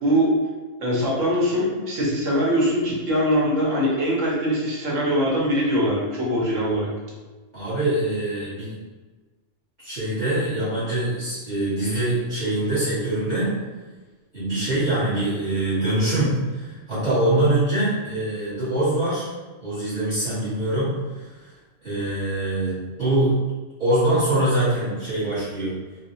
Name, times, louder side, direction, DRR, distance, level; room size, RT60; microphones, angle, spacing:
voice 1, 0.0-0.3 0.8-6.9, equal, 80° right, -5 dB, 1.2 m, -22 dB
voice 2, 7.5-8.7 9.8-13.5 14.3-19.3 19.6-21.5 21.8-23.4 23.8-25.7, right 1 dB, 40° right, -12 dB, 1.1 m, -24 dB
3.8 x 2.1 x 2.6 m, 1.3 s
omnidirectional pair, 1.3 m